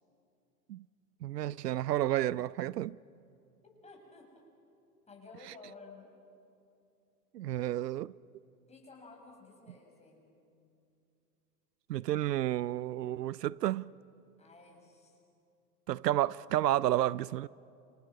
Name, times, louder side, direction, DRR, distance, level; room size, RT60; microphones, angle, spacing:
voice 1, 1.2-3.0 7.3-8.1 11.9-13.9 15.9-17.5, right 13 dB, 80° right, 0.5 m, -31 dB
voice 2, 3.8-4.3 4.9-6.1 8.7-10.3 14.4-15.2, left 3 dB, 15° left, 6.9 m, -54 dB
29.0 x 27.0 x 6.1 m
hypercardioid pair, 95°, 47 cm